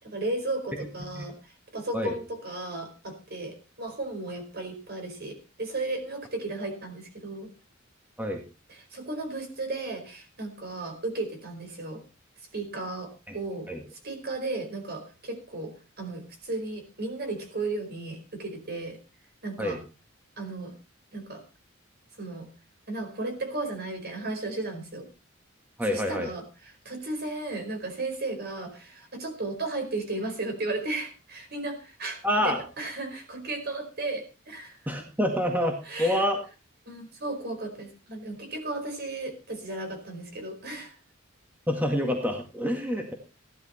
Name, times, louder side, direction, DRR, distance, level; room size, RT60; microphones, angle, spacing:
voice 1, 0.0-7.5 8.7-12.0 12.5-13.7 14.0-19.0 19.4-19.8 20.4-20.7 21.1-21.4 22.2-22.5 22.9-25.1 25.8-34.8 35.8-36.3 36.9-41.0, right 2 dB, 50° right, 5 dB, 4.8 m, -35 dB
voice 2, 25.8-26.3 32.2-32.6 34.9-36.4 41.7-43.1, equal, 10° right, 3 dB, 1.9 m, -27 dB
15.5 x 12.0 x 4.3 m, 0.31 s
head